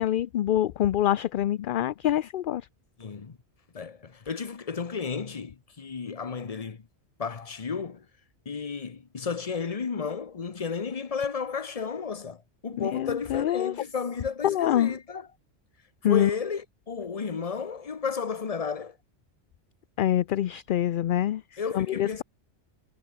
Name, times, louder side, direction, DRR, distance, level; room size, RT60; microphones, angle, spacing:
voice 1, 0.0-2.6 12.8-13.7 14.4-15.0 16.0-16.3 20.0-21.4 21.7-22.2, left 12 dB, 60° left, 0.6 m, -25 dB
voice 2, 3.0-3.4 3.7-6.8 7.2-8.0 8.5-15.3 16.0-19.0 21.6-22.2, left 5 dB, 35° left, 1.0 m, -33 dB
omnidirectional pair, 1.1 m